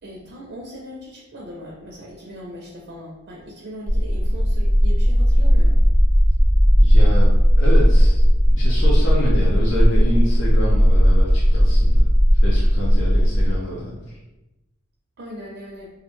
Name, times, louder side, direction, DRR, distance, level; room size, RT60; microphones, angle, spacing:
voice 1, 0.0-5.8 15.2-15.9, equal, 55° right, -2 dB, 0.4 m, -39 dB
sound 1, 3.9-13.6, equal, 35° left, 0.7 m, -15 dB
voice 2, 6.8-7.3 7.6-8.2 8.5-12.1 12.4-14.2, equal, 70° left, -5 dB, 0.5 m, -27 dB
2.3 x 2.1 x 3.0 m, 1.0 s
head